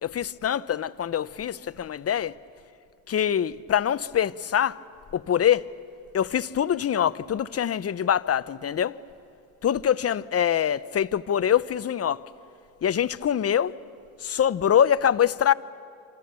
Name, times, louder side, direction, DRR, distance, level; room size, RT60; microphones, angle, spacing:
voice 1, 0.0-2.3 3.1-4.8 5.1-5.7 6.1-9.0 9.6-12.2 12.8-13.7 14.2-15.5, left 9 dB, 35° left, 0.7 m, -24 dB
27.5 x 25.5 x 6.9 m
supercardioid pair, 80°, 40 cm